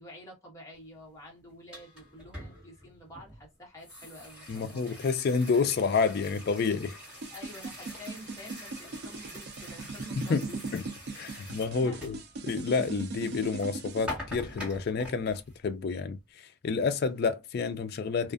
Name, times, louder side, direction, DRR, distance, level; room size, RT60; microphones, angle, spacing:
voice 1, 0.0-5.0 7.3-10.6 11.3-12.1, equal, 15° left, 1.0 m, -49 dB
sound 1, 1.5-13.7 14.1-15.6, left 1 dB, 5° right, 1.4 m, -45 dB
voice 2, 4.5-7.0 10.2-10.5 10.7-10.8 11.2-12.2 12.4-16.2 16.6-18.3, left 5 dB, 50° left, 0.3 m, -29 dB
sound 2, 7.2-14.1, right 3 dB, 50° right, 0.4 m, -39 dB
2.4 x 2.4 x 2.4 m
head